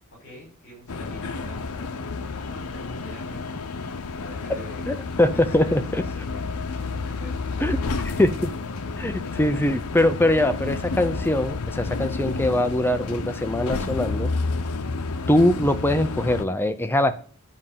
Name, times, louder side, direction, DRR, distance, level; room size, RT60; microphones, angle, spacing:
voice 1, 0.2-2.0 2.3-3.5 4.0-4.8 5.3-6.7 7.2-8.1, left 1 dB, 50° left, -4 dB, 5.0 m, -44 dB
sound 1, 0.9-16.4, left 3 dB, 90° left, 0.8 m, -30 dB
voice 2, 4.9-5.8 7.6-7.8 8.2-8.3 9.0-14.3 15.3-17.1, left 1 dB, 10° left, 10 dB, 0.5 m, -22 dB
9.9 x 5.4 x 7.3 m, 0.43 s
head